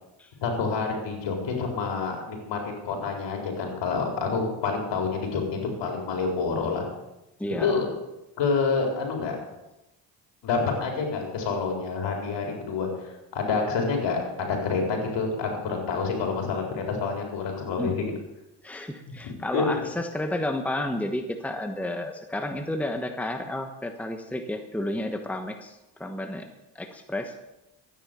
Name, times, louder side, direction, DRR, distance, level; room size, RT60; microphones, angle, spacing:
voice 1, 0.4-6.9 7.6-7.9 8.4-9.4 10.4-12.9 13.3-18.1 19.2-19.8, left 4 dB, 70° left, 1 dB, 4.4 m, -28 dB
voice 2, 7.4-7.8 17.8-18.1 18.6-27.4, left 1 dB, 5° left, 6 dB, 1.2 m, -31 dB
13.0 x 9.8 x 7.0 m, 0.95 s
cardioid pair, 95°, 45 cm